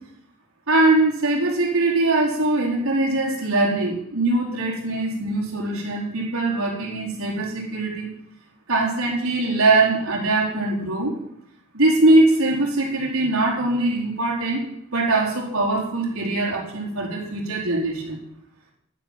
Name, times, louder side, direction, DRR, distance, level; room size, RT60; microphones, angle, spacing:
voice 1, 0.7-8.1 8.7-11.2 11.7-14.6 14.9-18.2, right 2 dB, 85° right, -2 dB, 4.4 m, -21 dB
11.5 x 10.5 x 7.4 m, 0.74 s
head